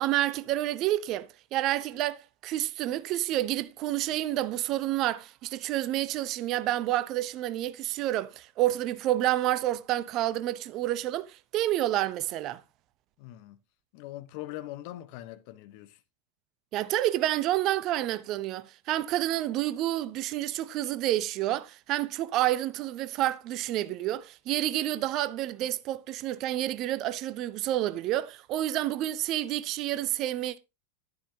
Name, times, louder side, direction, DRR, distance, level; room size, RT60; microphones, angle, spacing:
voice 1, 0.0-12.6 16.7-30.6, right 14 dB, 35° right, 0.7 m, -29 dB
voice 2, 13.2-13.6 13.9-16.0, left 15 dB, 45° left, 1.1 m, -42 dB
11.5 x 11.0 x 2.8 m
figure-of-eight pair, 90°, 0 cm